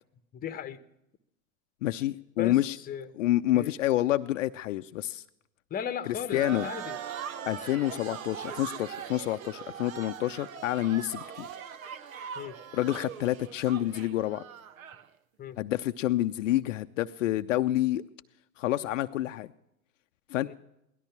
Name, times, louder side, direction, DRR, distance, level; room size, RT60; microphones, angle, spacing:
voice 1, 0.3-0.8 2.4-2.6 2.9-3.1 3.5-3.7 5.7-7.0 12.4-12.6 15.4-15.6 20.4-20.5, left 8 dB, 20° left, 14 dB, 1.0 m, -36 dB
voice 2, 1.8-2.8 3.1-5.2 6.3-6.7 7.5-11.5 12.7-14.4 15.6-18.0 18.6-19.5 20.3-20.5, left 14 dB, 60° left, 10 dB, 0.6 m, -28 dB
sound 1, 6.3-15.1, right 8 dB, 75° right, 1.1 m, -41 dB
17.5 x 13.0 x 5.9 m, 0.84 s
figure-of-eight pair, 95°, 42 cm